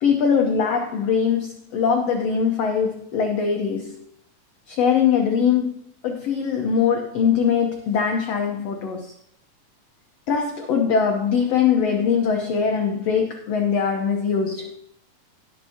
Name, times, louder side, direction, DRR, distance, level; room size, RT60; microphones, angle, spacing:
voice 1, 0.0-4.0 4.7-5.7 6.0-9.1 10.3-14.8, left 6 dB, 65° left, 1.9 m, -22 dB
18.0 x 6.5 x 2.9 m
omnidirectional pair, 3.7 m